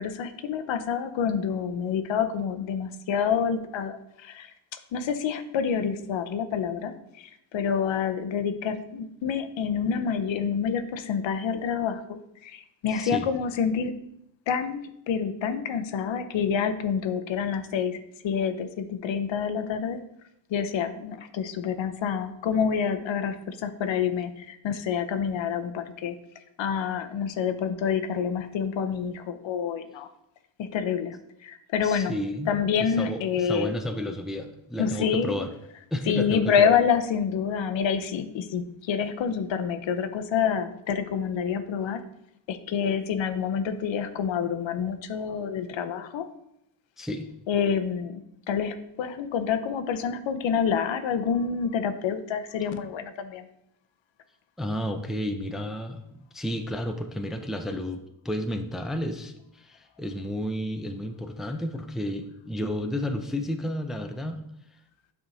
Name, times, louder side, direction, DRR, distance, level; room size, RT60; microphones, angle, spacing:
voice 1, 0.0-4.5 4.9-14.0 14.5-18.0 18.2-20.0 20.5-26.2 26.6-30.1 30.6-31.2 31.4-32.1 32.5-33.7 34.8-35.3 36.1-42.0 42.5-46.3 47.5-53.5, left 7 dB, 75° left, 9 dB, 0.7 m, -27 dB
voice 2, 12.9-13.3 31.8-32.5 32.8-35.5 35.9-36.8 47.0-47.3 54.6-56.0 56.3-64.4, left 1 dB, ahead, 6 dB, 0.4 m, -32 dB
8.8 x 3.6 x 3.9 m, 0.79 s
cardioid pair, 105°, 46 cm